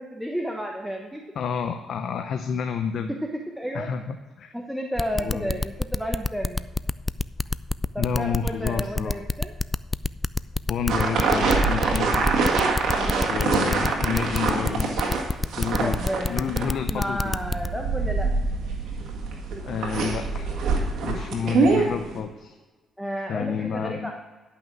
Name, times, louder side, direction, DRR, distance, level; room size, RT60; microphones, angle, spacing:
voice 1, 0.0-1.2 3.1-3.9 4.5-6.7 7.9-9.5 12.9-13.4 15.8-18.3 21.1-21.6 23.0-24.1, equal, ahead, 1 dB, 1.1 m, -32 dB
voice 2, 1.4-3.1 3.7-4.5 5.2-5.6 8.0-9.2 10.7-12.3 13.3-15.1 15.6-16.0 16.3-17.4 19.6-20.5 21.0-22.5 23.3-24.1, left 6 dB, 65° left, 7 dB, 0.6 m, -29 dB
sound 1, 5.0-17.7, left 2 dB, 20° left, 0.3 m, -26 dB
sound 2, 10.9-22.2, right 4 dB, 75° right, 1.9 m, -25 dB
11.0 x 5.8 x 6.1 m, 1.3 s
cardioid pair, 90°, 0 cm